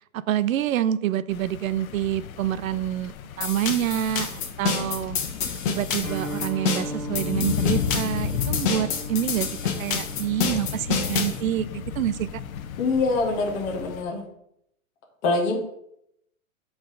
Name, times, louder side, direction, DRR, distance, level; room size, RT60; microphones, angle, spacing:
voice 1, 0.1-5.2 5.7-9.5 9.8-12.4, right 11 dB, 70° right, 16 dB, 0.6 m, -27 dB
sound 1, 1.3-14.0, left 8 dB, 75° left, 0.8 m, -34 dB
sound 2, 3.4-11.4, left 6 dB, 35° left, 1.1 m, -28 dB
Guitar, 6.0-13.8, right 1 dB, 5° left, 3.0 m, -39 dB
voice 2, 12.8-14.2 15.2-15.6, left 3 dB, 20° left, 0 dB, 0.8 m, -24 dB
7.8 x 3.5 x 5.3 m, 0.78 s
hypercardioid pair, 160°, 42 cm